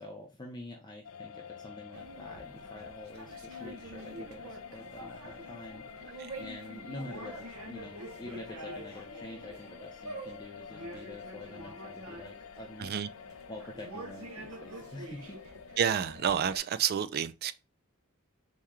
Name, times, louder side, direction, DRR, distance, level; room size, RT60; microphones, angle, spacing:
voice 1, 0.0-12.9 13.5-15.4, left 1 dB, 20° left, 0.6 m, -47 dB
sound 1, 1.0-16.3, left 7 dB, 85° left, 0.4 m, -49 dB
sound 2, 1.9-16.6, right 1 dB, 85° right, 0.9 m, -47 dB
voice 2, 15.8-17.5, right 8 dB, 45° right, 0.3 m, -29 dB
4.4 x 2.9 x 3.6 m
head